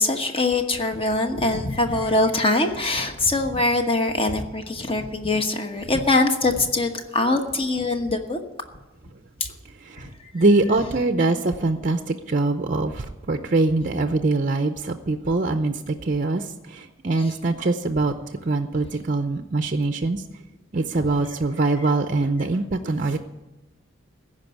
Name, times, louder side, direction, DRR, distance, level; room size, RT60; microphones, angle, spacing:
voice 1, 0.0-8.4 9.4-9.5 17.2-17.3, left 2 dB, 25° left, 5 dB, 1.2 m, -23 dB
voice 2, 9.8-18.1 18.4-20.2 20.7-23.2, right 2 dB, 40° right, 7 dB, 0.6 m, -23 dB
15.0 x 5.4 x 9.2 m, 1.1 s
head